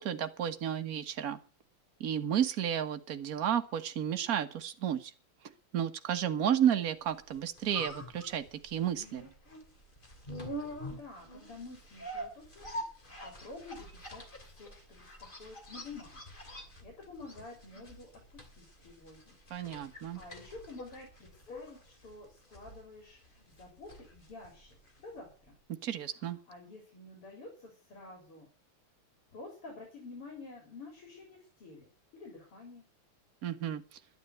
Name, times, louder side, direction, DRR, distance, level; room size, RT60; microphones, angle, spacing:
voice 1, 0.0-1.4 2.0-5.1 5.7-9.2 19.5-20.2 25.8-26.4 33.4-34.0, right 9 dB, 45° right, 8 dB, 1.6 m, -32 dB
sound 1, 7.2-25.2 25.5-25.6, equal, 20° left, 2.8 m, -46 dB
voice 2, 10.5-12.7 13.2-15.1 15.4-16.2 16.5-19.3 19.8-25.5 26.1-28.5 29.3-32.9, left 3 dB, 80° left, 1 dB, 4.8 m, -50 dB
11.5 x 10.0 x 7.9 m, 0.36 s
omnidirectional pair, 2.4 m